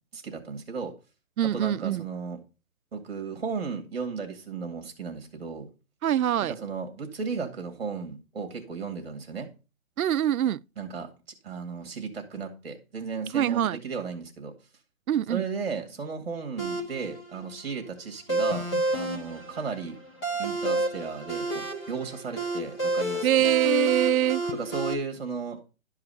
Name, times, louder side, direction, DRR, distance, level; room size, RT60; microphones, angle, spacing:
voice 1, 0.1-0.9 1.5-2.4 2.9-5.7 6.5-9.5 10.8-11.1 11.4-14.5 15.3-18.7 18.9-20.0 20.4-23.5 24.5-25.6, right 5 dB, 45° right, 2.1 m, -35 dB
voice 2, 1.4-2.1 6.0-6.5 10.0-10.6 13.3-13.8 15.1-15.4 23.2-24.4, right 11 dB, 85° right, 0.5 m, -24 dB
sound 1, 16.6-24.9, right 1 dB, 15° left, 2.0 m, -30 dB
12.0 x 4.8 x 5.6 m
hypercardioid pair, 175°, 42 cm